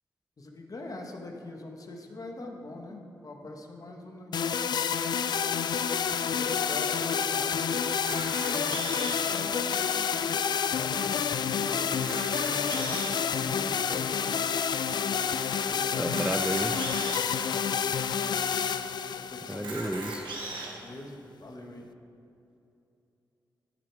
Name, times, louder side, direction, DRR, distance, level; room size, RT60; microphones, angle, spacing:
voice 1, 0.4-4.7 6.3-7.9 8.2-10.0 10.7-12.0 12.4-13.1 13.4-14.5 15.5-16.2 17.4-17.6 19.3-20.0 20.8-21.9, left 2 dB, 50° left, 2 dB, 1.3 m, -43 dB
sound 1, 4.3-20.3, left 7 dB, 65° left, 0.3 m, -29 dB
Camera, 7.9-9.3 10.0-10.1 10.3-10.4 11.0-11.1 11.9-13.2 13.9-14.0 16.0-17.2 17.9-18.0 18.3-18.4 19.5-20.7, right 3 dB, 80° right, 1.3 m, -38 dB
voice 2, 16.0-16.8 19.5-20.3, right 1 dB, 10° right, 7 dB, 0.5 m, -32 dB
13.5 x 4.9 x 4.7 m, 2.7 s
supercardioid pair, 45°, 8 cm